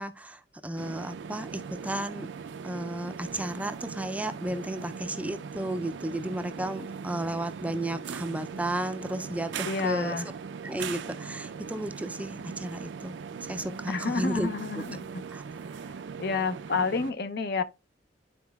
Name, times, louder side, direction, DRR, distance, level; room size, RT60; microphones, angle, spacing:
voice 1, 0.0-2.3 2.6-10.2 10.6-13.1 13.4-14.5 14.8-15.0 15.3-15.4, right 1 dB, 10° right, 0.4 m, -33 dB
sound 1, 0.8-17.1, right 6 dB, 85° right, 0.4 m, -40 dB
voice 2, 9.6-10.3 13.9-15.2 16.2-17.6, left 4 dB, 60° left, 0.6 m, -29 dB
11.5 x 4.3 x 2.3 m
head